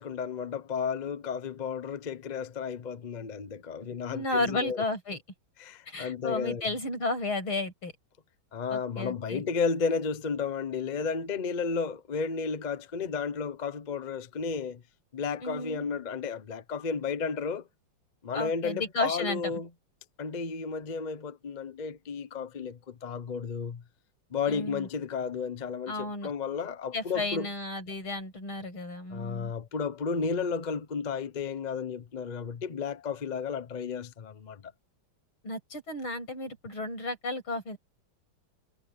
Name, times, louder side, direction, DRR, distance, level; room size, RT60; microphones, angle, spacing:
voice 1, 0.0-4.8 5.6-6.6 8.5-14.8 15.1-17.6 18.2-19.7 20.2-23.8 24.3-27.5 29.1-34.6, left 5 dB, 40° left, 0.6 m, -33 dB
voice 2, 4.1-5.2 5.9-7.9 8.7-9.4 15.4-15.9 18.3-19.6 24.5-24.9 25.9-26.3 26.9-29.5 35.4-37.8, left 2 dB, 75° left, 8.2 m, -33 dB
omnidirectional pair, 2.3 m